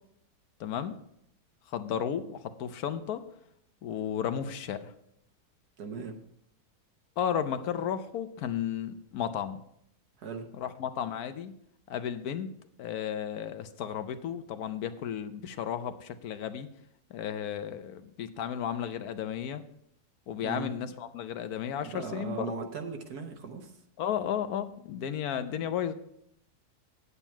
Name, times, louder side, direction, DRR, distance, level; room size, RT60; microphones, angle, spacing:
voice 1, 0.6-1.0 1.7-3.2 3.8-4.9 7.2-9.6 10.6-11.5 11.9-12.5 12.8-16.7 17.1-19.6 20.3-22.5 24.0-25.9, left 9 dB, 75° left, 10 dB, 1.2 m, -33 dB
voice 2, 5.8-6.2 10.2-10.5 20.4-20.7 21.8-23.7, right 5 dB, 75° right, 5 dB, 1.5 m, -38 dB
9.0 x 8.4 x 4.5 m, 0.73 s
omnidirectional pair, 1.7 m